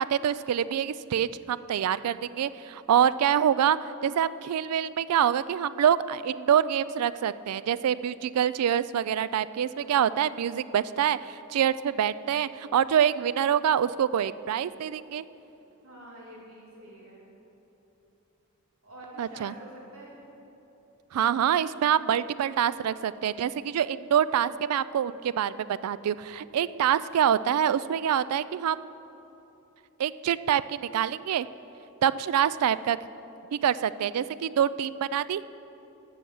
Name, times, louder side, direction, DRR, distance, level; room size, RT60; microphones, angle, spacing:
voice 1, 0.0-15.3 19.2-19.5 21.1-28.9 30.0-31.5 32.0-33.0 33.6-35.5, right 9 dB, 90° right, 17 dB, 0.3 m, -26 dB
voice 2, 9.8-10.3 15.8-17.3 18.8-20.2, right 1 dB, 70° right, -4 dB, 2.6 m, -47 dB
12.0 x 6.2 x 7.1 m, 3.0 s
head